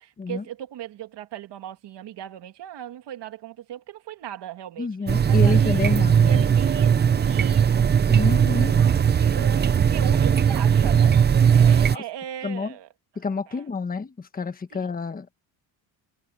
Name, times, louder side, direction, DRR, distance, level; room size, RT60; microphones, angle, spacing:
voice 1, 0.0-7.9 8.2-8.6 9.2-12.9 13.5-13.6 14.7-14.9, right 10 dB, 65° right, 2.2 m, -38 dB
voice 2, 4.8-6.4 8.1-8.7 11.9-12.0 12.4-12.8 13.2-15.4, left 4 dB, 20° left, 1.2 m, -29 dB
sound 1, 5.1-12.0, right 7 dB, 25° right, 0.5 m, -18 dB
cardioid pair, 160°, 46 cm